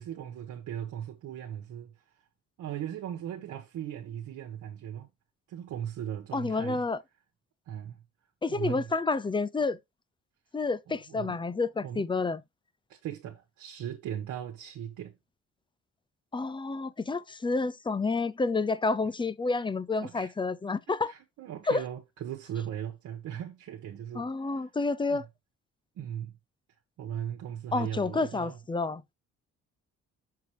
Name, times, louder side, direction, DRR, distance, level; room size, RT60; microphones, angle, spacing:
voice 1, 0.0-1.9 2.6-5.1 5.5-6.8 7.7-8.0 8.5-8.9 10.9-11.4 11.8-12.0 12.9-15.1 20.0-20.3 20.9-24.7 25.1-25.2 25.9-26.4 27.0-28.6, right 10 dB, 80° right, 1.4 m, -38 dB
voice 2, 6.3-7.0 8.4-9.8 10.5-12.4 16.3-21.1 21.7-21.8 24.1-25.2 27.7-29.0, left 3 dB, 15° left, 0.6 m, -29 dB
6.7 x 4.9 x 3.0 m
cardioid pair, 90°, 30 cm